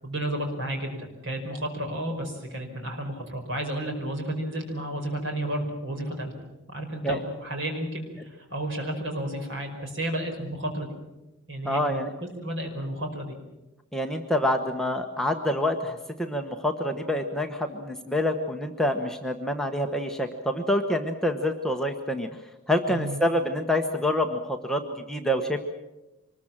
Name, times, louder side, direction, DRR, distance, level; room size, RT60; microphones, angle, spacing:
voice 1, 0.0-6.3 6.7-10.9 11.5-13.4 22.9-23.2, right 1 dB, 60° right, 3 dB, 5.2 m, -32 dB
voice 2, 11.6-12.1 13.9-22.3 22.7-25.6, left 1 dB, ahead, 3 dB, 1.1 m, -27 dB
24.5 x 21.0 x 7.4 m, 1.0 s
head